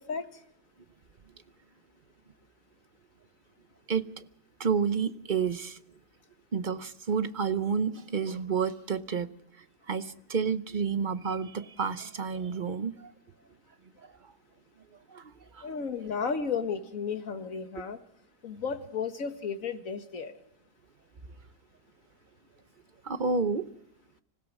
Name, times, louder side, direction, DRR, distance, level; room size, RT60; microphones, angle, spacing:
voice 1, 3.9-4.2 4.6-5.8 6.5-9.3 9.9-13.1 14.0-14.1 15.1-15.7 23.0-23.7, right 5 dB, 40° right, 11 dB, 0.8 m, -30 dB
voice 2, 15.6-18.0 18.4-20.4, left 5 dB, 55° left, 7 dB, 1.9 m, -33 dB
26.0 x 16.5 x 6.1 m, 0.77 s
omnidirectional pair, 1.7 m